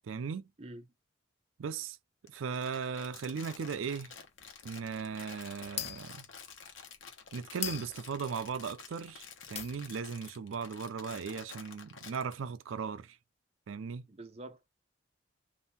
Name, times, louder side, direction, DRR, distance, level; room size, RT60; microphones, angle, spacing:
voice 1, 0.1-0.4 1.6-2.0 2.3-4.1 4.6-6.2 7.3-13.2 13.7-14.1, right 6 dB, 90° right, 0.4 m, -37 dB
Crumpling crinkling, 2.3-12.3, left 6 dB, 80° left, 1.1 m, -50 dB
sound 1, 3.6-9.2 9.5-10.1, left 11 dB, 30° left, 0.3 m, -43 dB
voice 2, 14.1-14.7, right 1 dB, 30° right, 0.6 m, -47 dB
3.6 x 2.6 x 4.0 m
head